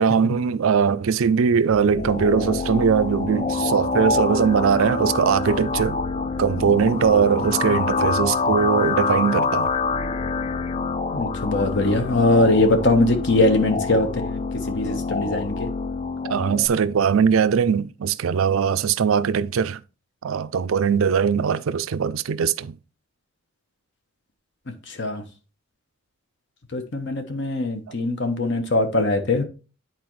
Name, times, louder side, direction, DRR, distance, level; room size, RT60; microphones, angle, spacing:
voice 1, 0.0-6.0 6.4-9.7 16.3-19.8 20.2-22.8, right 6 dB, 75° right, 0.4 m, -20 dB
sound 1, 1.7-16.7, left 4 dB, 30° left, 0.3 m, -26 dB
voice 2, 11.1-14.4 14.7-15.7 24.9-25.2 26.7-29.4, left 2 dB, 55° left, 1.1 m, -21 dB
9.4 x 4.4 x 3.1 m
head